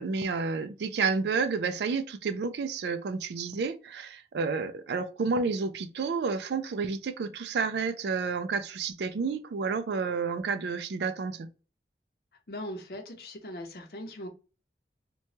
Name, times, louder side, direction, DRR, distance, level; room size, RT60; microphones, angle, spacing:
voice 1, 0.0-11.5, right 4 dB, 75° right, 0.4 m, -30 dB
voice 2, 12.5-14.3, left 1 dB, 60° left, 0.7 m, -40 dB
3.0 x 2.2 x 2.7 m
head